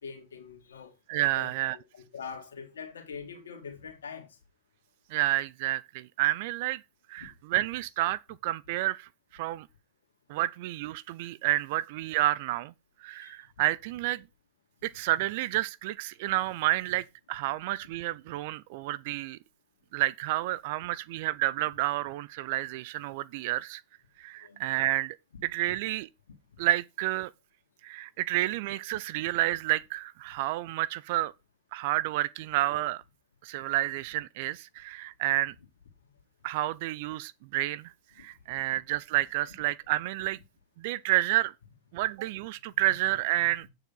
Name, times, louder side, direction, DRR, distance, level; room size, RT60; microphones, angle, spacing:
voice 1, 0.0-0.9 1.3-4.3 7.2-7.3 13.2-13.3 14.9-15.0 17.4-17.5 24.4-24.6 38.2-38.3 38.5-38.8 39.5-39.6 39.8-40.0 42.9-43.0, left 6 dB, 80° left, 2.2 m, -44 dB
voice 2, 1.1-1.8 5.1-6.8 7.1-9.7 10.3-12.7 13.0-14.2 14.8-19.4 19.9-23.8 24.2-25.2 25.4-26.1 26.6-27.3 27.8-31.3 31.7-33.0 33.4-35.5 36.4-40.4 40.8-41.5 41.9-43.7, right 16 dB, 60° right, 0.4 m, -30 dB
9.0 x 4.9 x 5.4 m
hypercardioid pair, 100°, 0 cm